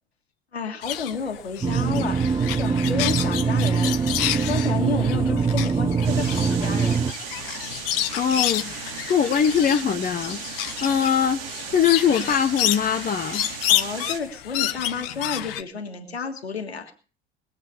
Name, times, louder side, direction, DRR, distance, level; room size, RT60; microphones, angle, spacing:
voice 1, 0.5-7.1 13.7-16.9, left 5 dB, 80° left, 5 dB, 1.9 m, -31 dB
sound 1, 0.8-15.6, left 12 dB, 60° left, 1.3 m, -30 dB
sound 2, 1.6-7.1, right 5 dB, 15° right, 0.8 m, -23 dB
sound 3, 6.0-14.2, right 7 dB, 65° right, 3.3 m, -36 dB
voice 2, 8.1-8.7 9.1-11.4 11.7-13.5, left 8 dB, 25° left, 7 dB, 1.1 m, -22 dB
20.5 x 8.1 x 6.9 m, 0.39 s
figure-of-eight pair, 70°, 32 cm